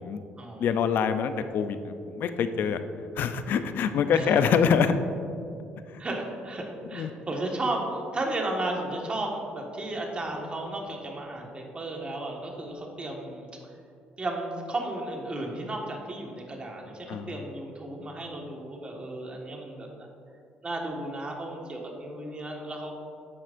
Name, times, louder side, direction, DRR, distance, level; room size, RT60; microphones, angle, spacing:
voice 1, 0.6-2.8 3.1-4.9 5.9-6.0 6.9-7.1 17.1-17.4, left 7 dB, 65° left, 10 dB, 0.5 m, -25 dB
voice 2, 6.0-13.7 14.2-20.1 20.6-22.9, right 2 dB, 30° right, 0 dB, 1.5 m, -34 dB
10.5 x 7.7 x 2.6 m, 2.5 s
cardioid pair, 95°, 4 cm